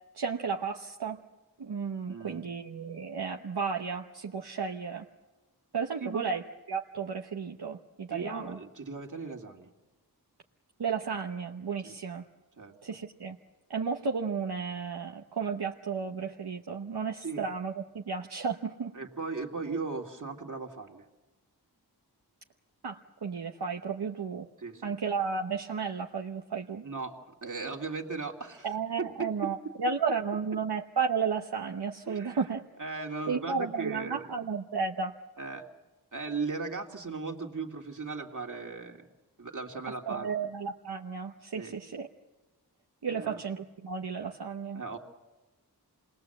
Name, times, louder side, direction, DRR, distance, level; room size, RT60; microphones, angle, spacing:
voice 1, 0.1-1.2 1.6-5.0 5.7-6.4 6.7-8.6 10.8-12.2 12.8-13.4 13.7-18.9 22.8-24.5 24.8-26.8 28.6-32.6 33.3-35.2 40.1-42.1 43.0-45.0, right 5 dB, 75° right, 2 dB, 1.1 m, -33 dB
voice 2, 2.1-2.5 6.0-6.3 8.1-9.7 11.8-12.0 12.6-13.0 17.2-17.4 18.9-21.1 24.6-24.9 26.8-28.7 29.2-29.3 32.1-32.4 32.8-34.2 35.4-35.6 36.1-39.1 39.4-40.3 41.5-41.7 43.1-43.4 44.7-45.0, right 4 dB, 50° right, 1 dB, 2.5 m, -37 dB
27.5 x 20.5 x 7.9 m, 1.1 s
wide cardioid pair, 60°, 39 cm